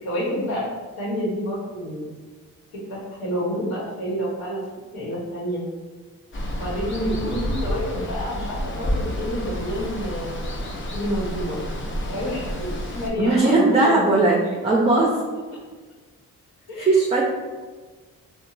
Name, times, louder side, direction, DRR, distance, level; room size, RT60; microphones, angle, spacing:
voice 1, 0.0-0.6 1.0-2.1 2.9-4.6 4.9-5.6 6.5-10.4 10.9-11.6 12.1-14.4 16.7-16.9, equal, 90° left, -6 dB, 1.1 m, -28 dB
Water, 6.3-13.1, equal, 35° left, 0.5 m, -29 dB
voice 2, 13.2-15.2 16.8-17.2, right 2 dB, 20° right, -3 dB, 0.4 m, -18 dB
2.9 x 2.2 x 2.4 m, 1.4 s
cardioid pair, 60°, 35 cm